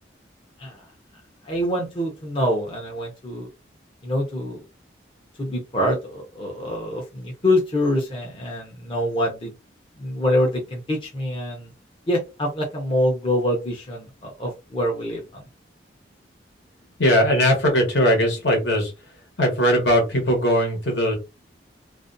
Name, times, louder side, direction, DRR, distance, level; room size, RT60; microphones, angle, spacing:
voice 1, 1.5-3.5 4.0-4.6 5.4-9.5 10.0-11.7 12.1-15.4, left 1 dB, 30° left, -1 dB, 0.6 m, -25 dB
voice 2, 17.0-18.9 19.4-21.2, equal, 70° left, 2 dB, 1.0 m, -19 dB
2.4 x 2.1 x 2.5 m, 0.27 s
head